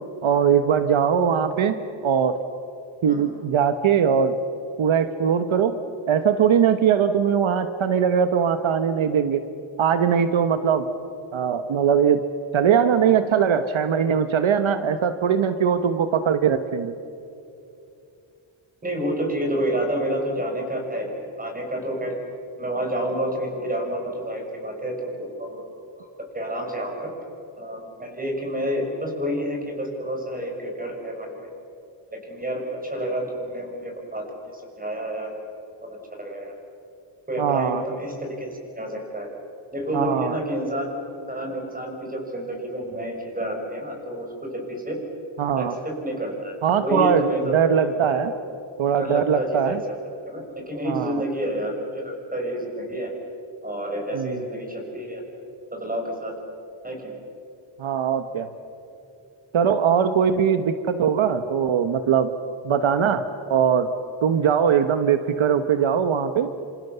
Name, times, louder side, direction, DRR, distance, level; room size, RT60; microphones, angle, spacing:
voice 1, 0.2-2.3 3.0-4.3 4.8-5.8 6.1-9.4 9.8-10.9 11.3-12.2 12.5-16.9 37.4-37.8 39.9-40.3 45.4-45.7 46.6-47.3 47.5-48.3 48.8-49.8 50.8-51.2 54.1-54.3 57.8-58.5 59.5-62.3 62.6-63.9 64.2-66.5, right 7 dB, 75° right, 9 dB, 1.2 m, -21 dB
voice 2, 18.8-22.2 22.6-25.6 26.0-26.1 26.3-27.1 27.6-31.5 32.1-35.3 36.1-36.5 37.3-39.3 39.7-40.9 41.3-45.0 45.6-48.2 49.0-49.8 50.3-53.1 53.6-55.2 55.7-56.3 56.8-57.2, right 1 dB, 15° right, 1 dB, 6.5 m, -29 dB
29.0 x 27.0 x 6.9 m, 2.7 s
wide cardioid pair, 120°, 49 cm